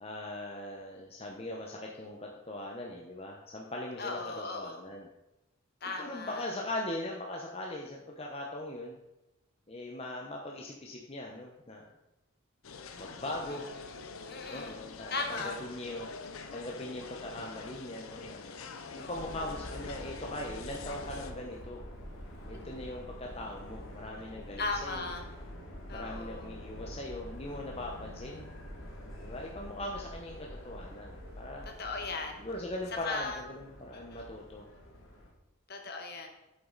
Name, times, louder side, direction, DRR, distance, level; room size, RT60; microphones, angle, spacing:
voice 1, 0.0-5.1 5.8-9.0 9.7-11.9 13.0-13.6 14.5-16.1 16.5-18.5 18.9-21.8 22.5-25.1 25.9-28.5 29.2-31.7 32.4-34.7, left 1 dB, 30° left, -1 dB, 0.9 m, -40 dB
voice 2, 4.0-4.8 5.8-6.4 13.8-13.9 14.3-14.7 15.1-15.6 19.0-19.3 22.5-22.6 24.6-25.2 25.9-26.5 31.6-32.4 33.0-33.4 33.9-34.2 35.7-36.3, left 3 dB, 50° left, 3 dB, 1.4 m, -37 dB
sound 1, 12.6-21.3, left 4 dB, 80° left, 0.8 m, -45 dB
Subway metro underground, 19.1-35.3, equal, 65° left, 2.1 m, -46 dB
8.9 x 7.6 x 4.0 m, 0.97 s
head